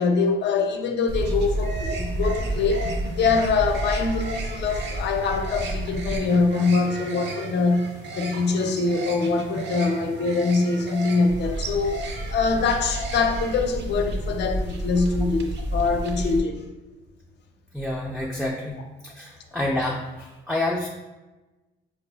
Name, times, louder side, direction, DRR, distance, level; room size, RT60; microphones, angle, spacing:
voice 1, 0.0-7.9 8.2-12.0 12.3-16.6, left 4 dB, 60° left, 0.5 m, -24 dB
sound 1, 1.1-16.4, right 1 dB, 60° right, 0.5 m, -30 dB
voice 2, 17.7-18.7 19.0-20.9, left 1 dB, ahead, 0.4 m, -28 dB
4.2 x 2.4 x 2.2 m
cardioid pair, 90°, 20 cm